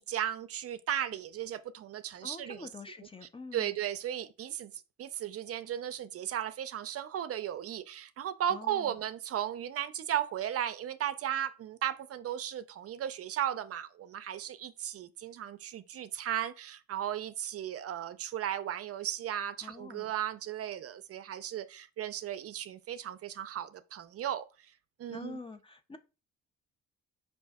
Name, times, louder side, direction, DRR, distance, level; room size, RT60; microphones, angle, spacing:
voice 1, 0.0-2.7 3.5-4.7 5.0-24.4 25.0-25.4, right 10 dB, 50° right, 0.4 m, -36 dB
voice 2, 2.2-3.7 8.5-8.9 19.6-20.1 25.1-26.0, left 3 dB, 20° left, 0.4 m, -46 dB
4.4 x 2.6 x 3.4 m
cardioid pair, 90°, 30 cm